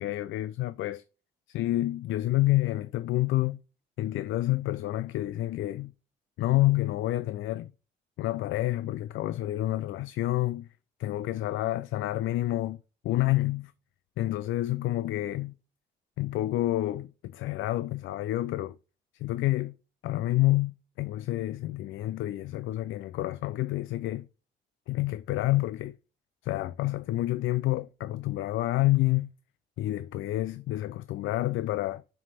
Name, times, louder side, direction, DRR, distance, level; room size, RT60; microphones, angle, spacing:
voice 1, 0.0-1.0 1.5-3.6 4.0-5.9 6.4-7.7 8.2-10.7 11.0-12.8 13.0-13.7 14.2-15.6 16.2-18.8 19.2-19.8 20.0-24.3 24.9-26.0 26.4-29.3 29.8-32.0, left 16 dB, 80° left, 0.4 m, -28 dB
7.6 x 3.2 x 4.1 m
cardioid pair, 90°, 20 cm